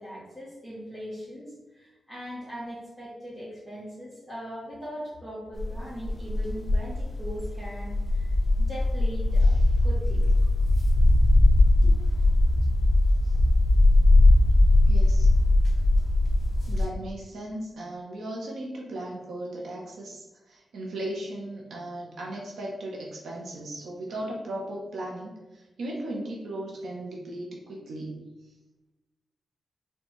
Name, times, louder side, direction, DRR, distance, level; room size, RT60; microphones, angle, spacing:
voice 1, 0.0-10.3 11.8-11.9, equal, 5° right, -10 dB, 0.8 m, -40 dB
sound 1, 5.6-16.8, left 2 dB, 35° left, 0.6 m, -20 dB
voice 2, 14.9-15.3 16.6-28.3, right 1 dB, 85° right, -2 dB, 0.6 m, -37 dB
4.2 x 2.2 x 3.0 m, 1.1 s
wide cardioid pair, 175°, 0 cm